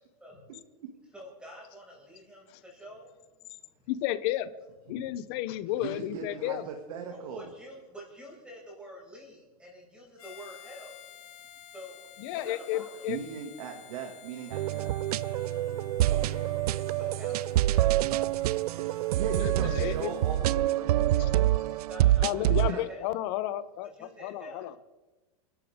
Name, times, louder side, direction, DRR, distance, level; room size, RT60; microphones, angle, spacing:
voice 1, 1.1-3.1 5.6-5.7 7.1-11.0 11.7-13.1 16.0-17.8 21.9-23.2 23.9-24.7, equal, 5° right, -3 dB, 6.1 m, -48 dB
voice 2, 3.9-4.5 4.9-6.6 12.2-13.2 19.4-20.1 21.2-21.3 22.2-24.7, left 14 dB, 45° left, 14 dB, 0.8 m, -32 dB
voice 3, 5.8-7.5 13.1-15.0 18.8-21.5 22.5-22.8, right 7 dB, 70° right, 2 dB, 2.3 m, -38 dB
Harmonica, 10.2-20.5, left 11 dB, 70° left, 1.9 m, -53 dB
sound 1, 14.5-22.7, right 14 dB, 90° right, 0.4 m, -26 dB
29.0 x 12.0 x 3.7 m, 1.1 s
supercardioid pair, 165°, 19 cm